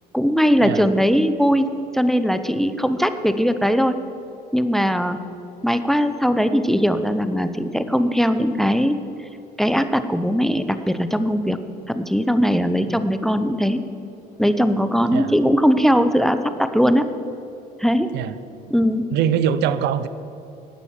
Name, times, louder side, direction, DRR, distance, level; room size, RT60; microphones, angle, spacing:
voice 1, 0.1-1.7 1.9-4.0 4.5-5.2 5.6-9.0 9.6-11.6 11.9-13.8 14.4-17.1 17.8-18.1 18.7-19.0, equal, ahead, 10 dB, 0.6 m, -19 dB
voice 2, 19.1-20.1, right 9 dB, 80° right, 14 dB, 0.6 m, -22 dB
11.5 x 8.7 x 7.3 m, 2.8 s
cardioid pair, 110°, 17 cm